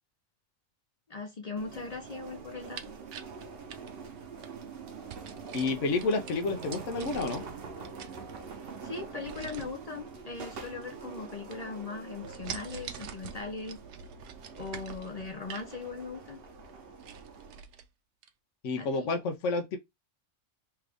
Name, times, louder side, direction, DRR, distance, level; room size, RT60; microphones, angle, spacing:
voice 1, 1.1-2.8 8.8-13.8 14.5-16.4 18.8-19.1, left 4 dB, 45° left, 0.5 m, -39 dB
sound 1, 1.6-17.6, right 4 dB, 55° right, 0.9 m, -45 dB
sound 2, 2.5-4.5 5.1-7.6 7.8-8.7 9.2-9.8 10.5-11.3 11.5-11.9 12.2-15.7 16.2-16.3 16.6-16.7 17.0-17.8 18.2-18.3, right 7 dB, 85° right, 0.9 m, -45 dB
voice 2, 5.5-7.4 18.6-19.8, left 3 dB, 85° left, 1.0 m, -30 dB
3.4 x 2.5 x 3.4 m
omnidirectional pair, 1.2 m